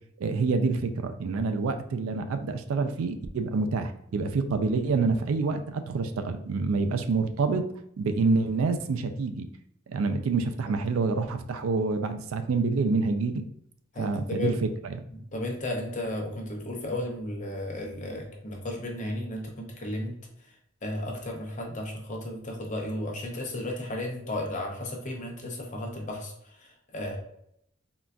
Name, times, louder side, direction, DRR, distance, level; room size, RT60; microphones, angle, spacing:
voice 1, 0.2-7.6 8.0-9.5 9.9-13.4 14.0-14.9, right 4 dB, 80° right, 7 dB, 0.4 m, -27 dB
voice 2, 13.9-14.6 15.1-20.1 20.8-27.2, left 1 dB, 40° left, 0 dB, 0.7 m, -34 dB
3.8 x 2.3 x 2.2 m, 0.72 s
head